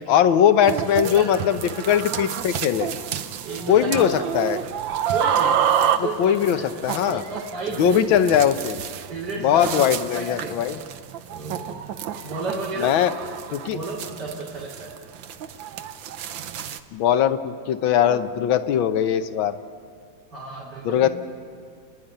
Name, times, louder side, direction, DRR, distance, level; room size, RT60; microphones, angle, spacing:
voice 1, 0.0-2.9 3.7-4.6 6.0-7.2 7.8-8.8 9.4-10.8 12.8-13.1 13.5-13.8 16.9-19.6 20.8-21.1, left 9 dB, 85° left, 10 dB, 1.6 m, -20 dB
sound 1, 0.6-16.8, right 8 dB, 75° right, 1.6 m, -29 dB
voice 2, 1.0-1.4 1.7-1.9 3.4-4.1 4.3-4.4 5.1-8.2 9.1-10.5 11.3-11.8 12.2-12.9 13.7-14.9 20.3-21.1, right 2 dB, 60° right, -5 dB, 3.6 m, -32 dB
30.0 x 10.5 x 10.0 m, 2.2 s
omnidirectional pair, 2.1 m